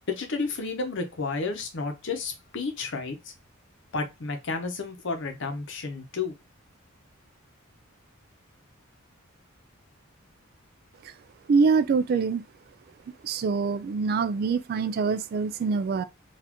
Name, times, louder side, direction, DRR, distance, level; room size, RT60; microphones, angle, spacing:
voice 1, 0.1-3.3 3.9-6.3, left 4 dB, 60° left, 0.8 m, -31 dB
voice 2, 11.5-12.4 13.2-16.0, right 5 dB, 45° right, 0.3 m, -24 dB
4.1 x 2.5 x 2.9 m
head